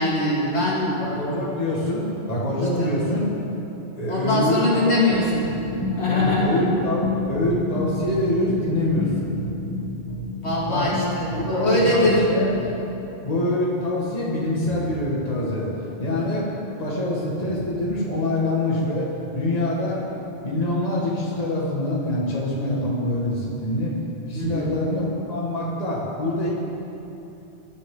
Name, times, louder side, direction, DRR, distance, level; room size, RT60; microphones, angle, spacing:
voice 1, 0.0-1.0 2.8-3.0 4.1-5.5 6.0-6.6 10.4-12.3 24.3-24.7, left 1 dB, 70° left, -6 dB, 2.5 m, -22 dB
voice 2, 1.0-3.3 4.0-4.9 6.1-9.3 10.7-10.9 11.3-12.5 13.2-15.7 16.0-16.5 16.8-19.0 19.3-20.0 20.4-23.9 24.3-26.5, left 1 dB, 35° left, -5 dB, 1.8 m, -25 dB
sound 1, 5.1-12.8, left 2 dB, 15° left, 2.0 m, -30 dB
20.0 x 7.3 x 3.8 m, 3.0 s
omnidirectional pair, 1.2 m